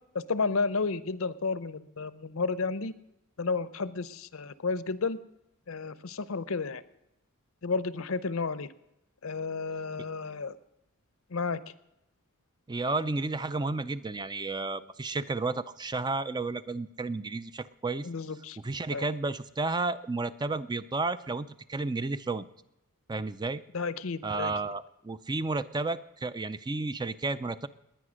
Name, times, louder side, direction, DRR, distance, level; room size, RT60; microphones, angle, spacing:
voice 1, 0.1-2.9 3.4-5.2 5.7-6.8 7.6-8.7 9.2-10.6 11.3-11.6 18.0-18.6 18.9-19.1 23.7-24.5, left 4 dB, 70° left, 16 dB, 0.7 m, -32 dB
voice 2, 12.7-18.1 18.6-22.5 23.1-23.6 24.2-27.7, right 3 dB, 20° right, 13 dB, 0.4 m, -32 dB
19.5 x 9.8 x 6.3 m, 0.87 s
head